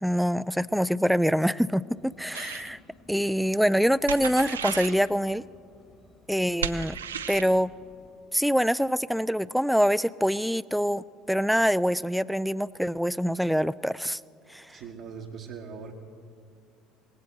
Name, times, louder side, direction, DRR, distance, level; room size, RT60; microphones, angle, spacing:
voice 1, 0.0-2.8 3.1-5.4 6.3-7.0 7.3-7.7 8.3-14.2 14.5-14.6, equal, ahead, 19 dB, 0.3 m, -25 dB
sound 1, 1.9-8.2, left 2 dB, 25° left, 1.4 m, -56 dB
sound 2, 2.3-2.7 4.1-5.0 6.6-7.5, right 7 dB, 80° right, 0.5 m, -34 dB
voice 2, 14.7-15.9, right 6 dB, 60° right, 0 dB, 1.1 m, -41 dB
19.0 x 15.5 x 4.3 m, 2.3 s
figure-of-eight pair, 60°, 0 cm